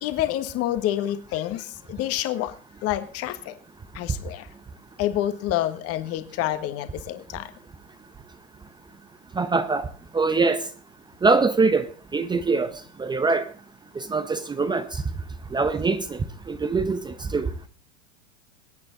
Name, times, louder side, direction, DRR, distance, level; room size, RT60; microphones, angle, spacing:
voice 1, 0.0-2.5 2.8-3.6 3.9-4.5 5.0-7.5, left 13 dB, 35° left, 1.5 m, -28 dB
voice 2, 9.4-9.9 10.1-10.6 11.2-12.7 13.0-13.5 14.0-14.8 15.5-16.2 16.5-17.5, right 4 dB, 10° right, 0.8 m, -23 dB
21.5 x 8.7 x 3.9 m
hypercardioid pair, 115°, 40 cm